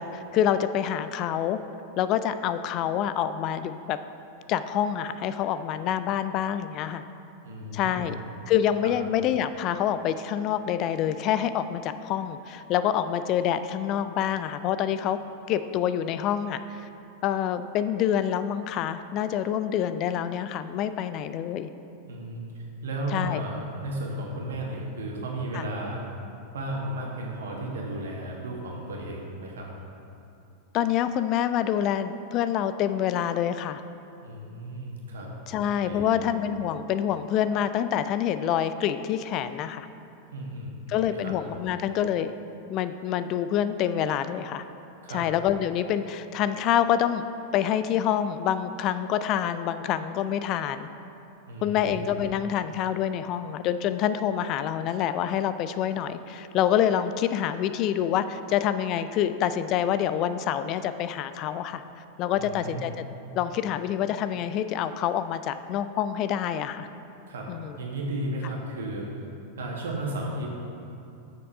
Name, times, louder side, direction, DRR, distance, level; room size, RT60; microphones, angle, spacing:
voice 1, 0.0-1.6 2.0-4.0 4.5-7.0 7.7-8.2 8.5-15.2 15.5-16.9 17.2-21.7 23.1-23.4 25.5-25.6 30.7-33.8 35.5-39.9 40.9-42.3 42.7-44.6 45.1-47.2 47.5-50.9 51.6-61.8 62.2-62.9 63.3-66.9 67.5-67.8, left 10 dB, 40° left, 12 dB, 0.3 m, -27 dB
voice 2, 7.4-8.1 8.8-8.9 22.1-26.0 26.5-29.7 34.2-35.3 35.8-36.2 40.3-41.3 45.0-45.2 51.5-52.0 62.3-62.9 67.3-67.5 67.8-69.1 69.6-70.5, right 1 dB, 65° right, -1 dB, 1.6 m, -34 dB
7.5 x 6.6 x 5.4 m, 2.8 s
figure-of-eight pair, 90°, 0 cm